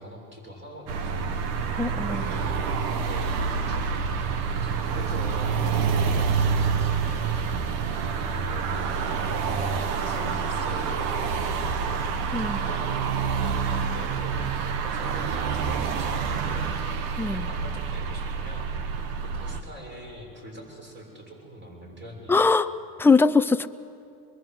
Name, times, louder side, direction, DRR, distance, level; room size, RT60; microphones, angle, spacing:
voice 1, 0.0-2.7 3.0-4.0 4.6-7.6 8.0-9.0 9.5-13.0 13.4-16.8 17.2-22.4, right 1 dB, 25° right, -1 dB, 6.8 m, -42 dB
sound 1, 0.9-19.6, right 5 dB, 80° right, 1.7 m, -27 dB
voice 2, 1.8-2.4 12.3-12.6 17.2-17.5 22.3-22.7 23.0-23.7, left 4 dB, 5° left, 11 dB, 0.5 m, -21 dB
24.0 x 22.5 x 7.8 m, 2.5 s
supercardioid pair, 100°, 47 cm